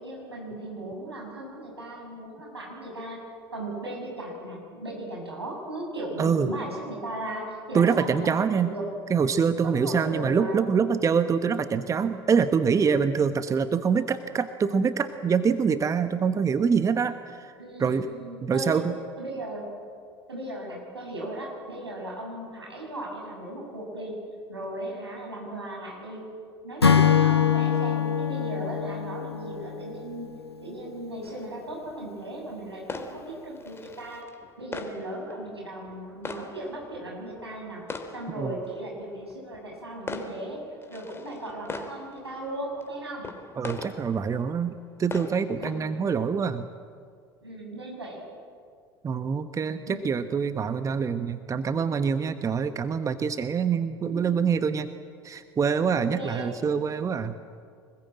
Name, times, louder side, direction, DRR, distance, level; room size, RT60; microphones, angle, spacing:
voice 1, 0.0-3.2 3.5-8.9 9.6-10.8 17.6-18.9 19.2-19.7 20.3-24.2 24.5-26.2 26.6-30.3 30.6-34.2 34.6-37.8 38.1-40.6 40.9-43.3 45.5-45.8 47.4-48.2 49.9-50.0 54.1-54.3 54.6-54.7 55.9-56.7, right 1 dB, 85° right, -2 dB, 7.5 m, -37 dB
voice 2, 7.7-8.7 9.1-17.5 17.8-18.1 18.4-18.9 38.4-38.5 43.6-46.7 49.0-54.9 55.2-57.3, right 6 dB, 25° right, 11 dB, 1.1 m, -25 dB
Acoustic guitar / Strum, 26.8-30.2, left 7 dB, 85° left, 0.9 m, -23 dB
sound 1, 31.2-46.4, left 3 dB, 20° left, 2.9 m, -42 dB
25.0 x 21.0 x 8.8 m, 2.1 s
figure-of-eight pair, 70°, 13 cm